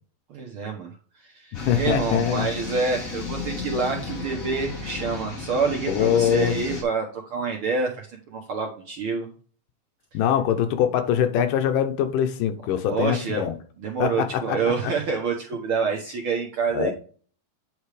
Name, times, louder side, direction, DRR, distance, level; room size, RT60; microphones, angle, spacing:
voice 1, 0.3-0.9 1.2-9.3 12.9-13.4 13.8-16.9, right 5 dB, 75° right, 1.2 m, -27 dB
voice 2, 1.5-2.5 5.9-6.5 10.1-13.5 14.0-14.9 16.7-16.9, left 9 dB, 85° left, 2.5 m, -23 dB
sound 1, 1.5-6.8, left 4 dB, 30° left, 1.8 m, -33 dB
9.3 x 3.4 x 4.9 m
omnidirectional pair, 3.8 m